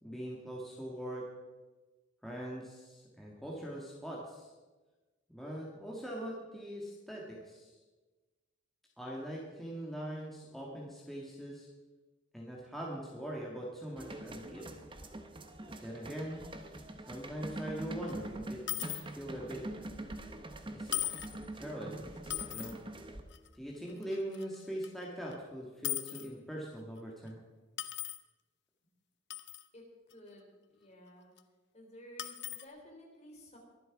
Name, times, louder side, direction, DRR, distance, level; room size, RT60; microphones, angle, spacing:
voice 1, 0.0-1.3 2.2-4.5 5.3-7.8 9.0-11.7 12.3-14.7 15.8-16.4 17.1-19.7 20.7-20.9 21.5-22.1 22.5-22.8 23.5-27.4, equal, ahead, -3 dB, 1.8 m, -42 dB
sound 1, 14.0-23.2, right 1 dB, 25° right, 1.1 m, -44 dB
sound 2, 18.1-18.2 18.7-19.0 20.1-20.2 20.9-21.4 22.2-22.7 23.3-23.5 24.0-24.6 24.8-24.9 25.3-25.4 25.8-26.3 27.0-27.1 27.8-28.2 29.3-29.6 30.1-30.2 31.4-31.5 32.2-32.6, left 15 dB, 60° left, 0.8 m, -38 dB
voice 2, 29.7-31.3 31.7-33.6, equal, 35° left, 0 dB, 3.7 m, -54 dB
23.0 x 7.9 x 4.8 m, 1.2 s
head